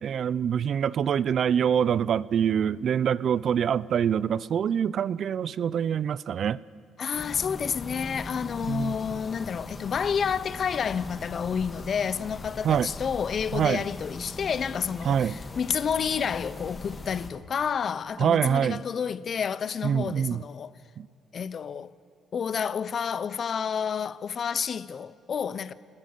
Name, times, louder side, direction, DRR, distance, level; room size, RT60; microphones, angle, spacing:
voice 1, 0.0-6.6 8.7-8.9 12.6-12.9 13.5-13.8 15.0-15.4 18.2-18.8 19.8-20.4 21.0-21.1, right 8 dB, 60° right, 0.5 m, -25 dB
voice 2, 7.0-20.7 21.3-21.9 22.3-25.7, left 7 dB, 50° left, 0.8 m, -30 dB
sound 1, 7.1-17.3, left 3 dB, 30° left, 2.0 m, -40 dB
28.5 x 20.5 x 6.7 m
cardioid pair, 90°, 0 cm